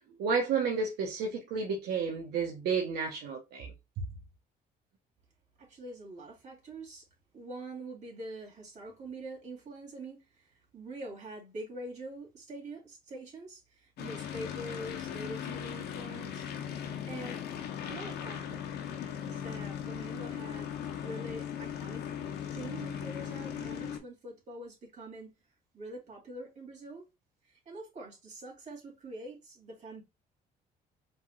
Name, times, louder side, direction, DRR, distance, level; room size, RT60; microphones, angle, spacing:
voice 1, 0.2-3.7, right 5 dB, 80° right, 1.0 m, -31 dB
voice 2, 5.6-7.0 7.3-16.5 17.1-17.4 17.9-18.7 19.2-20.7 21.0-22.0 22.5-25.3 25.7-27.0 27.4-30.0, right 2 dB, 45° right, 2.6 m, -44 dB
sound 1, 14.0-24.0, left 9 dB, 80° left, 0.9 m, -38 dB
4.9 x 3.8 x 2.4 m
cardioid pair, 110°, 17 cm